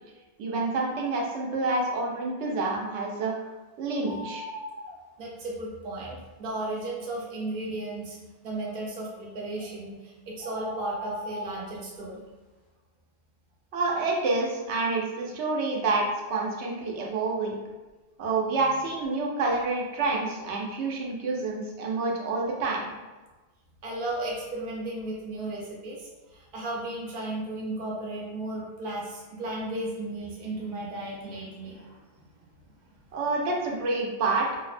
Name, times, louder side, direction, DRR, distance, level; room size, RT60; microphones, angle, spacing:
voice 1, 0.4-3.3 3.8-4.4 13.7-17.6 18.2-22.8 33.1-34.6, right 3 dB, 90° right, -1 dB, 0.9 m, -28 dB
sound 1, 4.0-4.9 9.5-9.7 10.4-11.6, equal, 25° right, 1.0 m, -38 dB
voice 2, 5.2-8.2 8.4-12.2 23.8-32.3 32.8-32.9, right 2 dB, 60° right, -4 dB, 0.8 m, -35 dB
2.6 x 2.0 x 2.4 m, 1.2 s
omnidirectional pair, 1.1 m